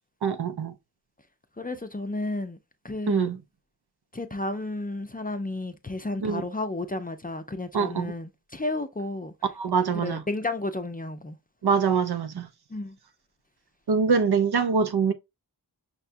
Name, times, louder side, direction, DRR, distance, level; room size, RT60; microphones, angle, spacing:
voice 1, 0.2-0.7 3.1-3.4 6.2-6.4 7.7-8.1 9.6-10.2 11.6-12.5 13.9-15.1, right 6 dB, 65° right, 0.6 m, -24 dB
voice 2, 1.6-2.6 2.8-3.3 4.1-9.3 10.0-11.4 12.7-13.0, left 2 dB, 20° left, 0.5 m, -32 dB
5.8 x 2.3 x 2.6 m
wide cardioid pair, 65°, 42 cm